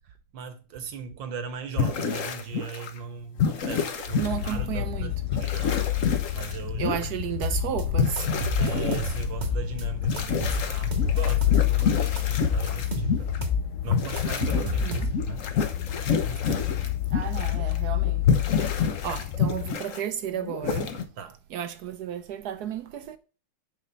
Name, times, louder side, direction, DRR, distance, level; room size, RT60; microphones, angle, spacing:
voice 1, 0.3-7.2 8.6-13.3 13.8-15.6 16.2-17.0 21.2-21.4, right 6 dB, 65° right, 1.5 m, -39 dB
sound 1, 1.8-3.0 3.4-4.5 5.3-7.1 7.9-9.3 10.0-13.4 13.9-17.8 18.0-20.0 20.4-21.0, left 6 dB, 55° left, 0.9 m, -28 dB
sound 2, 4.2-19.7, left 13 dB, 90° left, 1.7 m, -29 dB
voice 2, 4.2-5.1 6.8-8.3 14.5-15.1 17.1-18.7 19.0-21.0 21.5-23.2, right 9 dB, 85° right, 0.8 m, -33 dB
sound 3, 7.4-7.8 8.2-9.8 10.2-11.8 12.2-13.7 13.9-15.4, left 1 dB, 30° right, 0.9 m, -29 dB
6.6 x 5.0 x 6.6 m
omnidirectional pair, 2.4 m